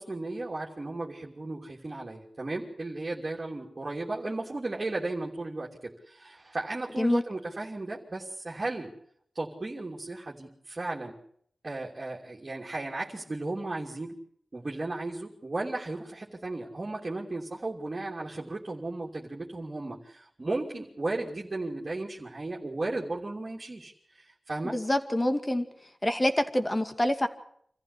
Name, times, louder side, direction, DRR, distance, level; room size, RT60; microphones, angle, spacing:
voice 1, 0.0-8.9 9.3-11.2 11.6-14.2 14.5-24.8, right 2 dB, 40° right, -3 dB, 3.1 m, -35 dB
voice 2, 24.6-25.7 26.0-27.3, left 1 dB, 20° left, 8 dB, 2.2 m, -26 dB
26.0 x 14.5 x 8.4 m, 0.67 s
wide cardioid pair, 70°, 0 cm